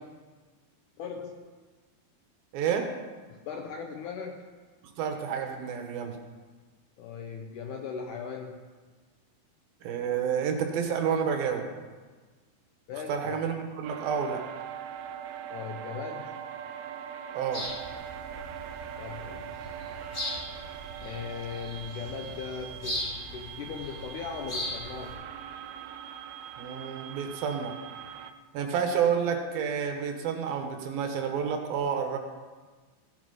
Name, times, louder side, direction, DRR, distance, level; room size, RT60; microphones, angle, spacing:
voice 1, 1.0-1.5 3.3-4.5 7.0-8.7 12.9-13.4 15.5-16.4 19.0-19.5 21.0-25.2, left 6 dB, 75° left, 3 dB, 1.9 m, -39 dB
voice 2, 2.5-2.9 5.0-6.2 9.8-11.7 13.1-14.4 17.3-17.7 26.6-27.8 28.5-32.2, right 7 dB, 75° right, 4 dB, 2.9 m, -29 dB
sound 1, 13.8-28.3, right 9 dB, 90° right, 2.6 m, -42 dB
sound 2, 17.5-25.1, left 1 dB, 35° left, 6.4 m, -39 dB
16.0 x 9.3 x 5.3 m, 1.4 s
omnidirectional pair, 4.5 m